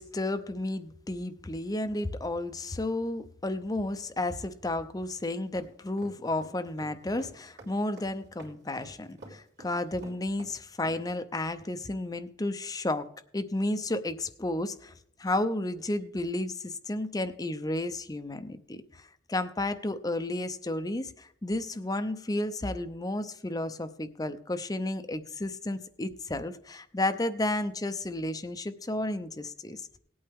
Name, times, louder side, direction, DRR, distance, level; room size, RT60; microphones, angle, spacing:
voice 1, 0.0-13.1 13.3-14.9 15.2-30.0, left 1 dB, 20° left, 9 dB, 0.6 m, -32 dB
sound 1, 5.6-11.0, right 1 dB, 65° right, 3.0 m, -48 dB
17.5 x 8.7 x 3.5 m, 0.66 s
head